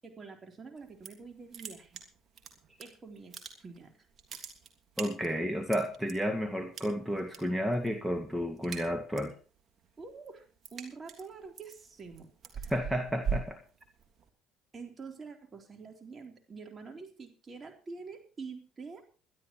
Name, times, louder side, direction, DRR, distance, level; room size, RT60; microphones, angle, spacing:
voice 1, 0.0-2.0 2.8-4.1 10.0-10.5 10.7-12.3 12.5-12.7 14.7-19.1, right 4 dB, 35° right, 3 dB, 3.7 m, -46 dB
sound 1, 0.8-1.3 1.5-2.8 3.2-3.8 4.1-6.1 6.7-7.4 7.7-8.0 8.3-9.4 9.8-14.3, right 6 dB, 50° right, 3.1 m, -40 dB
voice 2, 5.0-9.3 12.7-13.6, equal, 5° right, 5 dB, 2.0 m, -31 dB
22.5 x 12.0 x 3.1 m, 0.38 s
hypercardioid pair, 60°, 0 cm